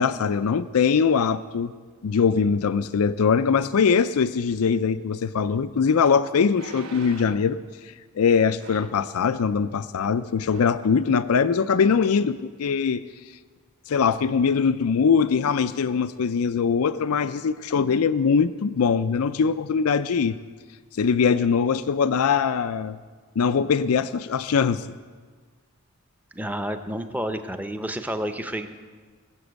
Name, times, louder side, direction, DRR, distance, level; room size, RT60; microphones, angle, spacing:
voice 1, 0.0-1.7 2.0-7.6 7.8-13.0 13.9-20.4 20.9-23.0 23.4-24.9, left 6 dB, 80° left, 13 dB, 0.4 m, -22 dB
sound 1, 5.5-5.6 6.5-7.5 8.6-9.1 10.0-10.2 10.5-10.8 11.3-11.4, right 3 dB, 70° right, 1.2 m, -43 dB
voice 2, 26.3-28.7, equal, 5° right, 8 dB, 0.7 m, -30 dB
20.5 x 7.1 x 8.0 m, 1.5 s
head